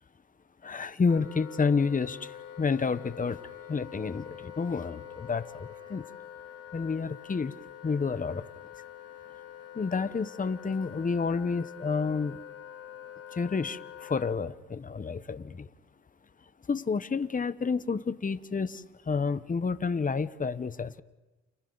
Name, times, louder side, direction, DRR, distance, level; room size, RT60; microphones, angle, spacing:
voice 1, 0.6-3.4 3.7-6.0 6.7-7.5 7.8-8.4 9.7-12.4 13.3-15.7 16.7-21.0, left 5 dB, 25° left, 14 dB, 1.0 m, -30 dB
Wind instrument woodwind instrument, 1.1-14.4, left 10 dB, 55° left, 2.7 m, -46 dB
29.5 x 29.5 x 4.0 m, 1.1 s
cardioid pair, 90°, 30 cm